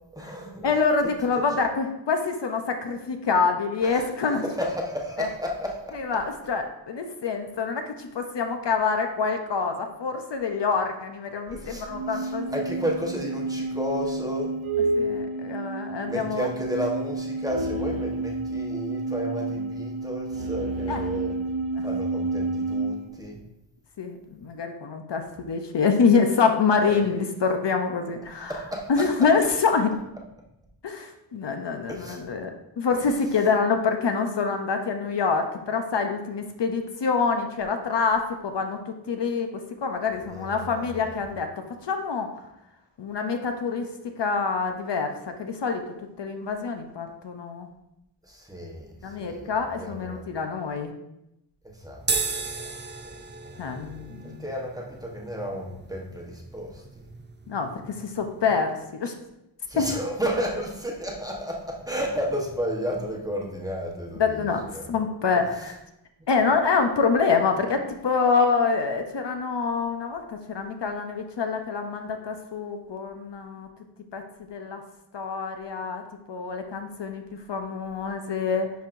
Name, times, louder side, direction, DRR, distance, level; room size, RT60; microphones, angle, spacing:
voice 1, 0.1-0.7 1.4-1.5 3.8-6.0 11.5-14.5 16.1-21.4 21.8-23.4 25.3-25.4 26.9-27.0 28.5-29.1 31.9-32.2 32.9-33.0 40.3-41.2 48.3-50.2 51.6-52.0 52.4-52.5 53.0-53.1 53.4-53.5 53.8-56.8 59.7-64.9 65.3-65.4, equal, 10° right, -1 dB, 1.1 m, -32 dB
voice 2, 0.6-4.4 5.2-5.3 5.9-12.5 15.0-16.5 20.9-21.0 21.8-21.9 24.0-28.6 28.9-29.9 30.8-41.5 41.8-42.3 43.0-45.8 46.2-47.7 49.0-50.9 53.6-54.4 57.5-59.1 59.8-59.9 64.2-65.8 66.3-73.7 74.1-74.2 74.5-74.8 75.1-76.0 76.3-78.7, left 5 dB, 60° left, 5 dB, 0.7 m, -26 dB
sound 1, 11.9-23.1, right 2 dB, 75° right, 0.7 m, -30 dB
sound 2, 52.0-58.6, right 4 dB, 25° right, 0.5 m, -35 dB
10.0 x 4.6 x 2.6 m, 0.87 s
wide cardioid pair, 115°, 47 cm